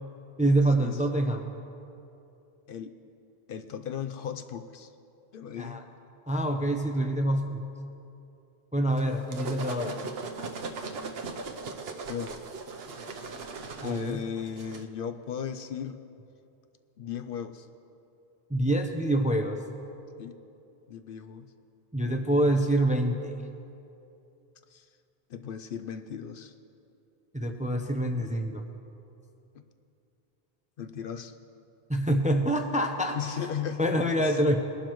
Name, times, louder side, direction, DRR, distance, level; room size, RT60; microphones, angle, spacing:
voice 1, 0.4-1.5 5.6-5.8 6.3-7.6 8.7-10.0 13.8-14.2 18.5-19.6 21.9-23.3 27.3-28.6 31.9-33.2 33.8-34.6, right 1 dB, 10° right, 5 dB, 0.5 m, -26 dB
voice 2, 3.5-4.9 5.3-5.8 12.1-12.3 13.8-16.0 17.0-17.7 20.2-20.4 20.9-21.5 24.7-24.9 25.3-26.5 29.5-29.6 30.8-31.4 33.1-33.9 34.2-34.4, left 8 dB, 65° left, 9 dB, 0.7 m, -36 dB
sound 1, 9.0-14.8, right 4 dB, 75° right, 1.0 m, -38 dB
21.0 x 11.5 x 3.1 m, 2.7 s
omnidirectional pair, 1.0 m